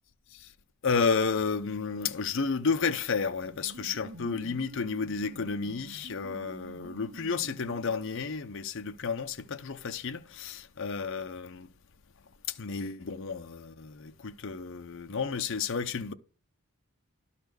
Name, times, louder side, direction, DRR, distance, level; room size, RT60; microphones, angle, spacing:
voice 1, 0.8-11.7 12.5-16.1, left 5 dB, 60° left, 0.6 m, -32 dB
sound 1, 3.4-8.3, right 1 dB, 85° right, 1.4 m, -48 dB
12.0 x 4.2 x 6.8 m
head